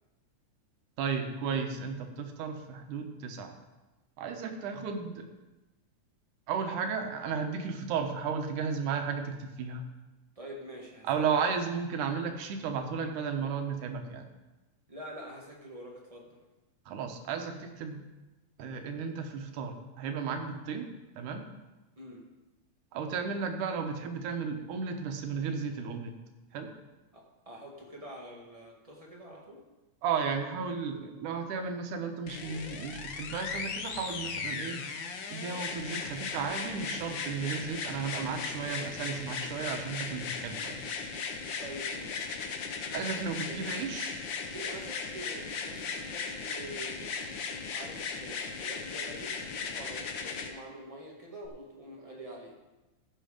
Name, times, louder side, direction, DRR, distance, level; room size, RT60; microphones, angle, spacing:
voice 1, 1.0-3.5 4.2-5.3 6.5-9.8 11.0-14.3 16.9-18.0 18.6-20.9 21.2-21.4 22.9-26.1 26.5-26.7 30.0-34.8 35.3-40.8 42.9-44.2, right 6 dB, 85° right, 5 dB, 2.6 m, -34 dB
voice 2, 10.3-11.6 14.9-16.4 22.0-22.2 27.1-29.6 41.6-42.3 43.5-43.7 44.5-47.3 47.7-52.6, right 1 dB, 20° right, -2 dB, 1.0 m, -46 dB
sound 1, 32.3-50.5 51.5-51.6, left 5 dB, 85° left, 1.0 m, -37 dB
15.0 x 6.2 x 5.1 m, 1.1 s
omnidirectional pair, 3.5 m